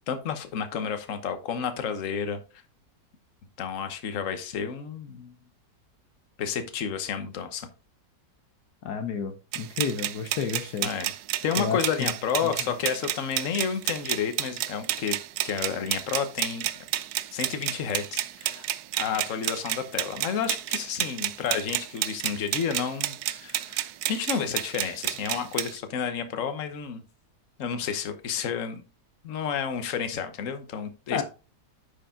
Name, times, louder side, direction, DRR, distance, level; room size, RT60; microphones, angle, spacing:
voice 1, 0.1-2.4 3.6-5.3 6.4-7.7 10.8-11.1 11.4-15.2 15.4-16.7 17.3-18.7 19.0-27.0 27.6-28.8 29.2-31.2, left 7 dB, 50° left, 9 dB, 1.3 m, -31 dB
voice 2, 8.8-10.9 11.6-12.1 31.1-31.2, left 6 dB, 70° left, 7 dB, 1.2 m, -30 dB
sound 1, 9.5-25.8, right 14 dB, 70° right, 1.0 m, -31 dB
10.0 x 4.9 x 3.7 m, 0.33 s
omnidirectional pair, 1.9 m